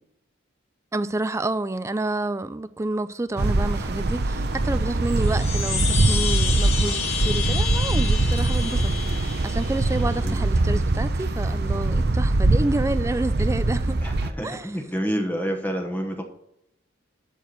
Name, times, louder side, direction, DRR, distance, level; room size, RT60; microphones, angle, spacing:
voice 1, 0.9-14.0 14.4-14.7, right 2 dB, 15° right, 0.4 m, -29 dB
sound 1, 3.4-14.3, right 2 dB, 55° right, 0.7 m, -23 dB
sound 2, 5.1-10.1, left 7 dB, 35° left, 1.1 m, -30 dB
voice 2, 10.0-10.4 14.0-16.2, equal, 10° left, 1.1 m, -29 dB
12.0 x 4.6 x 6.7 m
head